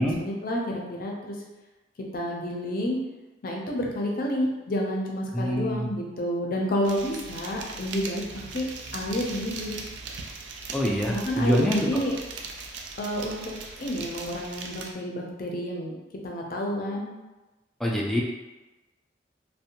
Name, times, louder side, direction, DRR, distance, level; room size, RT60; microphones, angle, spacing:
voice 1, 0.0-1.3 2.0-3.0 3.4-8.2 8.5-8.7 8.9-9.8 11.1-12.1 13.0-13.4 13.8-15.9 16.2-17.1, equal, 55° left, -1 dB, 0.5 m, -29 dB
voice 2, 5.3-5.9 10.7-12.0 17.8-18.2, equal, ahead, -2 dB, 0.3 m, -25 dB
sound 1, 6.8-14.9, right 4 dB, 85° right, 0.3 m, -39 dB
2.6 x 2.1 x 2.8 m, 1.1 s
head